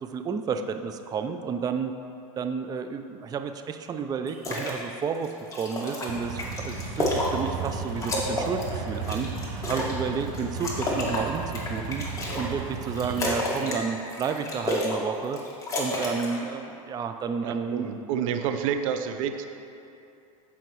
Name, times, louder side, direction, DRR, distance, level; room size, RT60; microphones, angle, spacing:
voice 1, 0.0-1.9 2.4-5.3 5.5-12.0 12.4-15.4 15.8-17.9, right 6 dB, 20° right, 7 dB, 0.4 m, -31 dB
sound 1, 4.3-4.7 5.1-7.7 8.0-10.0 10.3-12.5 12.8-13.8 14.1-15.0 15.2-16.4, left 1 dB, 20° left, 2.1 m, -30 dB
sound 2, 6.1-13.4, right 4 dB, 50° right, 1.3 m, -35 dB
voice 2, 17.4-19.5, right 8 dB, 65° right, 7 dB, 0.7 m, -29 dB
15.5 x 5.7 x 3.1 m, 2.7 s
hypercardioid pair, 105°, 18 cm